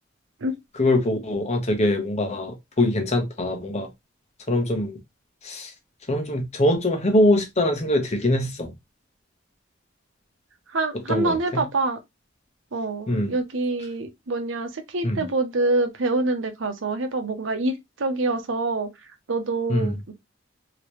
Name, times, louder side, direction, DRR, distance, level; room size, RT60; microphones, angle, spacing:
voice 1, 0.7-3.9 4.5-5.0 5.4-5.7 6.1-8.7 11.1-11.6 13.1-13.3 15.0-15.3 19.7-20.0, left 1 dB, 35° left, 0.9 m, -23 dB
voice 2, 10.7-12.0 12.7-18.9 19.3-20.1, right 2 dB, 85° right, 0.7 m, -26 dB
3.2 x 2.9 x 3.0 m
head